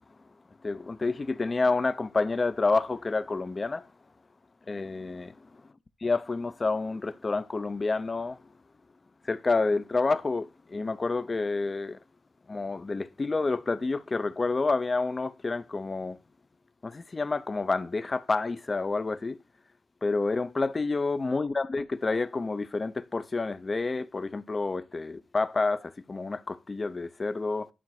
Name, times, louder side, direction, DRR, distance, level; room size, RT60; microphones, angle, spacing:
voice 1, 0.6-3.9 4.7-5.6 6.0-8.4 9.2-12.0 12.5-16.2 16.8-19.4 20.0-27.7, left 3 dB, 30° left, 0.6 m, -29 dB
11.0 x 3.9 x 4.7 m
cardioid pair, 110°, 0 cm